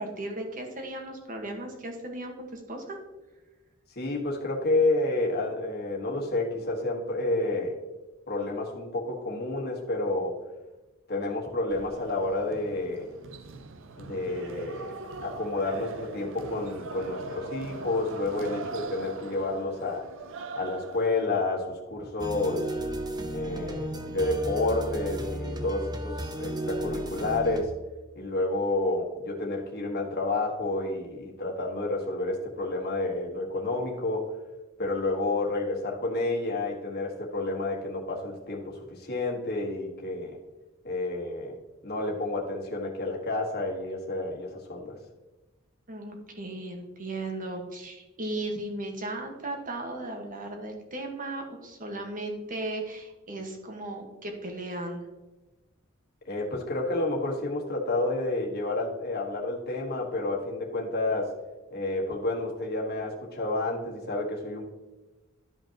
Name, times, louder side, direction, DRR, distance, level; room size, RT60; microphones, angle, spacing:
voice 1, 0.0-3.0 45.9-55.0, right 2 dB, 40° right, 3 dB, 1.4 m, -36 dB
voice 2, 3.9-7.8 8.3-10.3 11.1-13.1 14.0-14.9 15.2-20.0 20.5-22.6 23.3-27.7 28.1-34.3 34.8-40.4 40.8-41.6 41.8-44.9 56.2-61.3 61.7-64.6, left 2 dB, 50° left, -1 dB, 1.5 m, -30 dB
sound 1, 11.7-21.2, right 4 dB, 65° right, 0.6 m, -41 dB
sound 2, 22.2-27.6, right 1 dB, 20° right, 0.6 m, -34 dB
12.0 x 5.3 x 2.9 m, 1.1 s
head